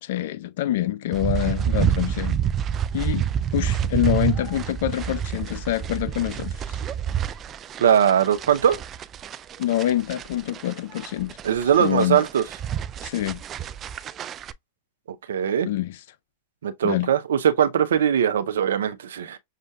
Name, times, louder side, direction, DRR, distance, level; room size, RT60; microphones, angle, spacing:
voice 1, 0.0-2.4 2.9-6.8 9.6-11.4 11.6-12.2 13.0-13.4 15.6-16.0 16.8-17.1, left 13 dB, 65° left, 0.4 m, -26 dB
sound 1, 1.1-14.5, right 9 dB, 30° right, 0.3 m, -28 dB
voice 2, 7.8-8.8 11.4-12.4 15.3-15.7 16.6-19.4, right 9 dB, 80° right, 0.6 m, -20 dB
6.5 x 2.5 x 2.3 m
hypercardioid pair, 110°, 0 cm